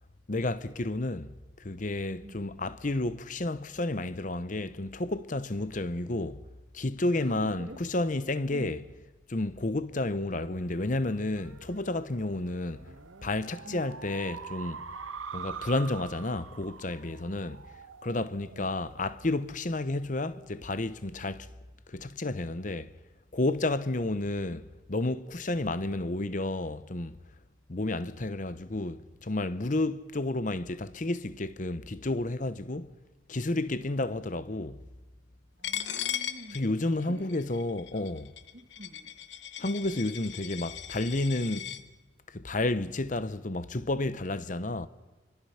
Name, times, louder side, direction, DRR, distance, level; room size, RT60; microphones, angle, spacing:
voice 1, 0.3-1.3 1.6-6.5 6.7-8.8 9.3-12.9 13.2-14.8 15.3-17.6 18.0-21.5 21.9-22.9 23.3-27.2 27.7-32.9 33.3-34.9 36.5-38.3 39.6-41.7 42.3-44.9, left 2 dB, 40° left, 0.8 m, -31 dB
voice 2, 7.1-7.8 8.5-8.7 13.6-14.0 18.5-18.8 35.6-36.6 37.0-37.5 37.9-38.2 38.5-39.2, equal, 45° right, 2.0 m, -47 dB
sound 1, 10.7-19.6, right 6 dB, 90° right, 1.1 m, -45 dB
Coin (dropping), 35.6-41.8, left 10 dB, 60° left, 1.0 m, -38 dB
25.5 x 25.0 x 5.8 m
head